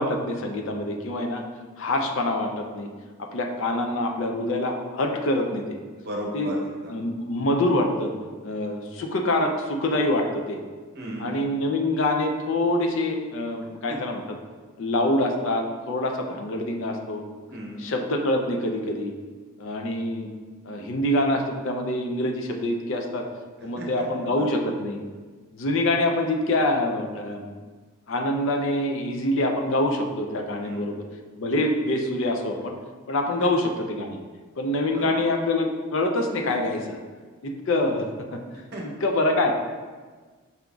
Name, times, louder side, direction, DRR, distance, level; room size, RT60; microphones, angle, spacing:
voice 1, 0.0-1.4 1.8-2.9 3.3-5.8 6.3-6.5 6.9-8.1 8.4-10.6 11.2-14.2 14.8-17.2 17.8-19.2 19.6-20.3 20.7-23.2 23.6-25.0 25.5-27.6 28.1-31.0 31.4-32.7 33.1-34.2 34.6-37.0 37.4-38.1 38.3-38.4 39.0-39.5, left 1 dB, 60° left, 3 dB, 0.5 m, -25 dB
voice 2, 6.0-6.9 10.9-11.3 17.5-17.8 23.8-23.9 24.2-24.6 30.6-30.8 33.4-33.5 34.9-35.1 38.7-38.8, right 1 dB, 45° right, -2 dB, 0.8 m, -35 dB
5.6 x 3.8 x 2.3 m, 1.4 s
head